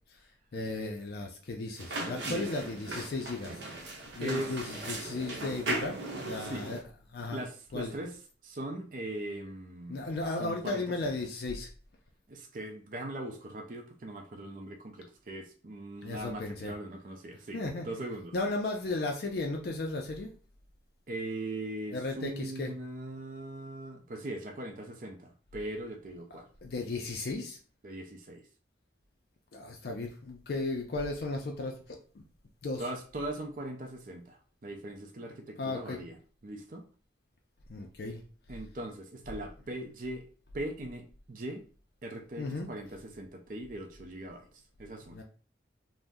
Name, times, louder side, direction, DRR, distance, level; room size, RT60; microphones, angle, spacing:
voice 1, 0.1-6.8 7.1-7.4 7.7-7.9 9.9-11.7 16.0-16.7 17.5-17.9 18.3-20.3 21.9-22.7 26.6-27.6 29.5-32.2 32.6-32.9 35.6-36.0 37.7-38.2 42.4-42.7 45.1-45.2, left 2 dB, 55° left, 1 dB, 0.4 m, -35 dB
sound 1, 1.8-6.8, right 2 dB, 80° right, 0.7 m, -38 dB
voice 2, 4.2-4.5 6.4-6.7 7.3-8.1 8.4-10.1 10.4-10.8 12.3-17.6 17.8-18.3 21.1-26.5 27.8-28.4 32.8-36.2 36.4-36.9 38.5-40.3 40.5-41.7 42.0-45.2, right 1 dB, 45° right, 3 dB, 0.4 m, -40 dB
2.6 x 2.0 x 3.5 m, 0.39 s
head